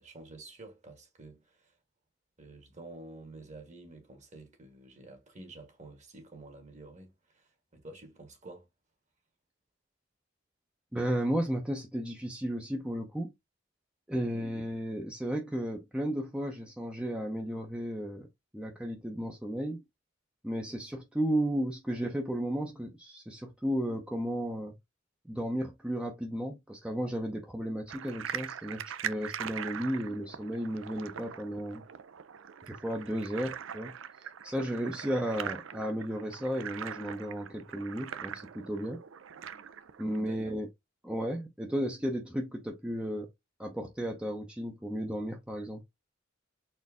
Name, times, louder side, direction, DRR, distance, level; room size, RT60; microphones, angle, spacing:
voice 1, 0.0-1.8 2.4-8.7 14.2-14.5 40.2-40.4, right 2 dB, 40° right, 1.6 m, -50 dB
voice 2, 10.9-13.3 14.1-18.3 18.5-19.8 20.4-24.7 25.3-31.8 32.7-33.9 34.4-39.0 40.0-40.7 41.0-43.3 43.6-45.8, equal, 5° right, 0.7 m, -34 dB
sound 1, 27.9-40.2, right 8 dB, 85° right, 0.5 m, -42 dB
4.3 x 2.7 x 3.6 m
head